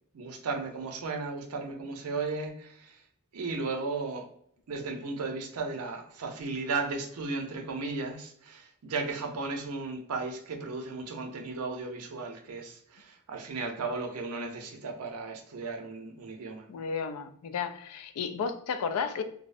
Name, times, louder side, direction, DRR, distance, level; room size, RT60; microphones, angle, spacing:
voice 1, 0.1-3.0 3.3-4.3 4.7-16.7, right 3 dB, 90° right, 0.5 m, -35 dB
voice 2, 16.7-19.2, left 6 dB, 80° left, 0.3 m, -33 dB
2.5 x 2.0 x 2.4 m
head